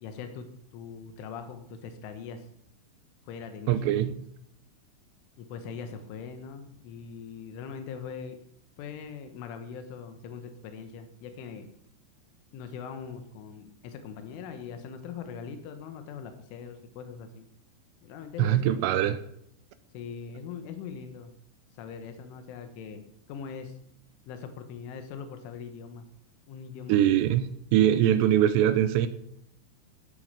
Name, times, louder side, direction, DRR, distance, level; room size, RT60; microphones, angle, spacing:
voice 1, 0.0-2.5 3.3-4.0 5.4-8.4 8.8-11.7 12.5-17.5 18.0-19.2 19.9-21.3 21.8-23.8 24.3-26.1 26.5-27.0, left 6 dB, 90° left, 7 dB, 3.8 m, -41 dB
voice 2, 3.7-4.1 18.4-19.2 26.9-29.1, right 11 dB, 80° right, 13 dB, 2.6 m, -22 dB
16.0 x 8.9 x 6.6 m, 0.72 s
omnidirectional pair, 5.4 m